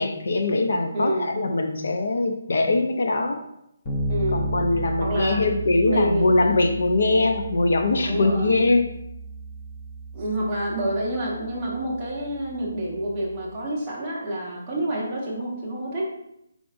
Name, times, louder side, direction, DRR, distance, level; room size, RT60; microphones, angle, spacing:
voice 1, 0.0-3.4 4.3-8.9, left 2 dB, 50° left, 5 dB, 0.6 m, -22 dB
voice 2, 0.9-1.3 4.1-4.5 5.0-5.4 5.8-6.3 8.1-8.6 10.1-16.1, right 1 dB, 10° right, -7 dB, 1.1 m, -28 dB
Bass guitar, 3.8-13.5, right 2 dB, 15° left, 0.8 m, -34 dB
8.5 x 5.0 x 2.6 m, 0.79 s
hypercardioid pair, 180°, 0 cm